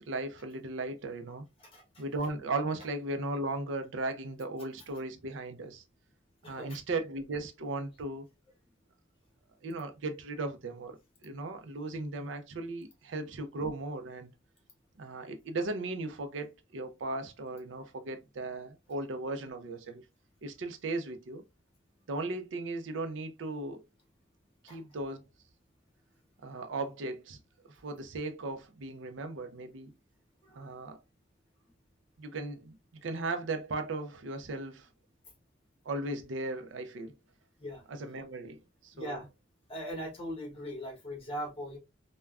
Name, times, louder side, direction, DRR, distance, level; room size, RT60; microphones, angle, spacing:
voice 1, 0.1-1.4 2.0-5.8 6.5-8.3 9.6-11.0 11.2-14.3 15.0-20.0 20.4-21.4 22.1-23.8 24.6-25.2 26.4-27.4 27.8-29.9 30.6-31.0 32.2-32.8 33.0-34.9 35.9-37.2 37.9-39.2, right 2 dB, 70° right, 0.5 m, -37 dB
voice 2, 1.6-2.0 6.4-6.8 24.7-24.8 30.5-30.7 37.6-37.8 38.9-39.3 39.7-41.8, equal, 30° left, 1.0 m, -40 dB
3.3 x 2.2 x 2.3 m
head